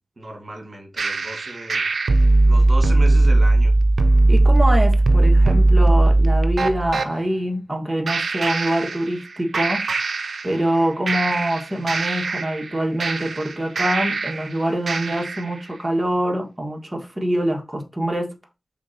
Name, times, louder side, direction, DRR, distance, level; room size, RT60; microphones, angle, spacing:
voice 1, 0.2-1.9 2.5-3.7, right 1 dB, 50° right, 1.6 m, -34 dB
sound 1, 1.0-7.1 8.1-9.3 9.5-10.8 11.1-14.5 14.9-15.5, right 2 dB, 80° right, 0.5 m, -18 dB
voice 2, 4.3-9.8 10.4-18.3, right 1 dB, 20° right, 1.3 m, -24 dB
5.0 x 3.8 x 2.7 m
cardioid pair, 50°, 0 cm